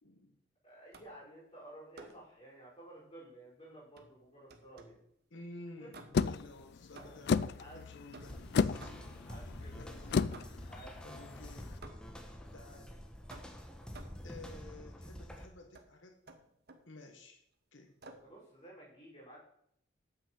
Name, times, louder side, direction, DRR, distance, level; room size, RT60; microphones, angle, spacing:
voice 1, 0.0-0.4 5.3-8.9 9.8-10.4 11.0-11.7 12.5-13.0 14.2-16.2 16.9-17.4 17.7-18.0, left 2 dB, 75° left, 3 dB, 1.3 m, -53 dB
voice 2, 0.6-5.0 5.8-5.9 6.9-7.2 7.6-7.8 9.3-10.1 10.6-11.1 14.2-14.3 18.2-19.4, right 1 dB, 25° left, -7 dB, 5.0 m, -53 dB
sound 1, 0.9-1.3 1.9-2.3 3.9-5.1 5.9-6.4 6.9-7.4 8.1-9.3 10.3-10.8 11.8-12.3 13.3-14.3 15.7-15.9 16.3-16.9 18.0-18.4, right 2 dB, 55° right, 1.2 m, -54 dB
sound 2, 6.1-11.7, left 5 dB, 60° left, 0.4 m, -34 dB
sound 3, 8.2-15.5, equal, 5° left, 1.1 m, -48 dB
8.4 x 6.1 x 7.5 m, 0.71 s
head